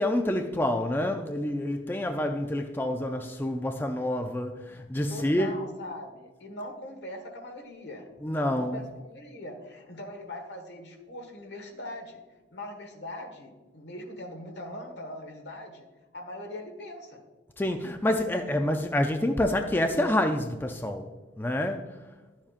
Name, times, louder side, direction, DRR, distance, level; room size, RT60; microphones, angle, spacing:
voice 1, 0.0-5.5 8.2-8.8 17.6-21.1 21.4-21.8, left 1 dB, 10° left, 5 dB, 0.4 m, -27 dB
voice 2, 5.1-12.2 12.5-15.9 16.1-17.2, left 1 dB, 70° left, 4 dB, 1.5 m, -41 dB
11.5 x 7.2 x 2.4 m, 1.2 s
head